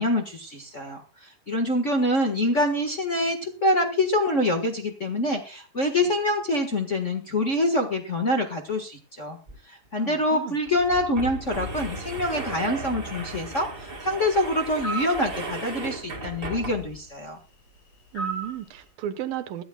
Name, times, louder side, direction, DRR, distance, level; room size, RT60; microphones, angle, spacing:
voice 1, 0.0-9.4 9.7-17.4, left 1 dB, 65° left, 0.7 m, -25 dB
sound 1, 9.5-9.6 9.8-9.9 10.7-17.1, right 2 dB, 25° right, 1.1 m, -36 dB
voice 2, 10.0-10.6 18.1-19.6, right 11 dB, 75° right, 2.9 m, -34 dB
sound 2, 14.8-15.2 18.2-18.6, right 4 dB, 25° left, 8.6 m, -31 dB
22.5 x 13.5 x 2.3 m
omnidirectional pair, 4.2 m